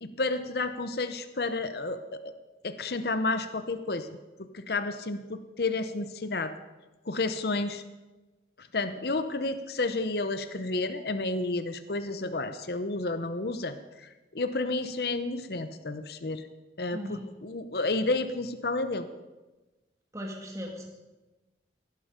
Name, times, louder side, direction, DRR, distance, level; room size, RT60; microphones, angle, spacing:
voice 1, 0.0-2.3 2.6-4.1 4.4-6.6 7.1-7.8 8.6-16.4 16.8-19.1, left 3 dB, 55° left, 10 dB, 0.8 m, -31 dB
voice 2, 20.1-20.8, equal, 15° right, 0 dB, 2.3 m, -37 dB
17.0 x 11.5 x 5.1 m, 1.1 s
head